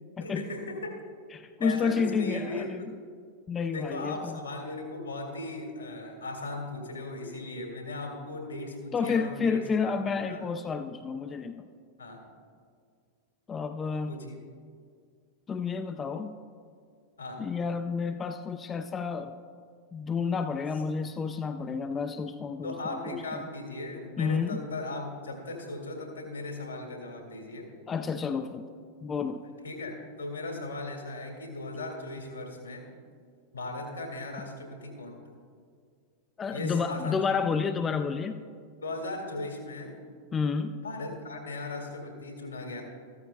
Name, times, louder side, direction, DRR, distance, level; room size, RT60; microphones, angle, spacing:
voice 1, 0.2-0.9 1.6-2.9 3.7-9.9 10.3-10.4 12.0-12.2 14.1-14.4 17.2-17.5 22.6-27.7 29.6-32.8 33.5-35.2 36.5-37.4 38.8-40.0 40.8-42.8, left 2 dB, 75° left, 2 dB, 1.9 m, -37 dB
voice 2, 1.3-2.8 3.5-4.4 8.9-11.7 13.5-14.2 15.5-16.3 17.4-19.4 19.9-23.5 24.2-24.6 27.9-28.7 29.0-29.4 36.4-38.4 40.3-40.8, left 5 dB, 20° left, 9 dB, 0.4 m, -30 dB
14.0 x 13.5 x 2.2 m, 2.1 s
figure-of-eight pair, 90°, 0 cm